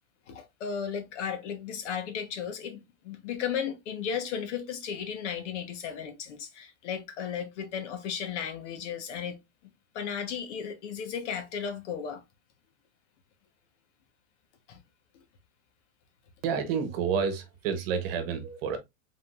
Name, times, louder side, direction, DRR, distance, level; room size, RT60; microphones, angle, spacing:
voice 1, 0.3-9.4 9.9-12.2 14.7-14.8, left 7 dB, 55° left, 1.3 m, -35 dB
voice 2, 16.4-18.8, right 6 dB, 45° right, 1.2 m, -29 dB
5.0 x 3.7 x 2.5 m
supercardioid pair, 160°, 41 cm